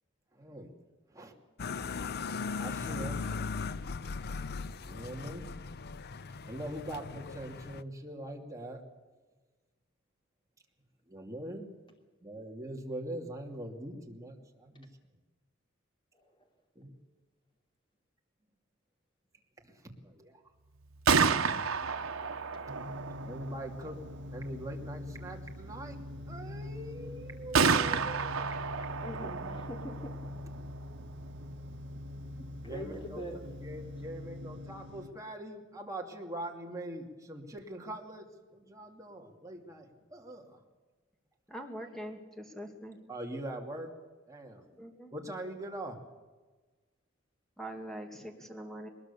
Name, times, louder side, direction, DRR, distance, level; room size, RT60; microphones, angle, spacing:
voice 1, 0.4-0.7 1.1-1.3 2.6-3.3 4.8-5.5 6.4-8.8 11.1-11.7 12.2-14.9 16.8-16.9 19.6-19.7 20.0-20.4 23.3-24.0 24.3-26.0 26.3-28.4 32.6-33.2 33.6-38.3 38.5-40.6 43.1-43.9 44.3-44.6 45.1-46.0, right 1 dB, 15° right, 1 dB, 2.6 m, -42 dB
sound 1, 1.6-7.8, left 4 dB, 50° left, 0.6 m, -38 dB
Gunshot gunfire, 20.8-34.6, right 5 dB, 85° right, 1.1 m, -34 dB
sound 2, 22.7-35.1, left 2 dB, 60° right, 1.6 m, -44 dB
voice 2, 29.0-30.1 32.4-33.4 44.5-44.6, equal, 25° left, 3 dB, 3.1 m, -43 dB
voice 3, 41.5-43.0 44.7-45.1 47.6-48.9, right 1 dB, ahead, 3 dB, 2.6 m, -43 dB
22.0 x 20.5 x 7.0 m, 1.3 s
head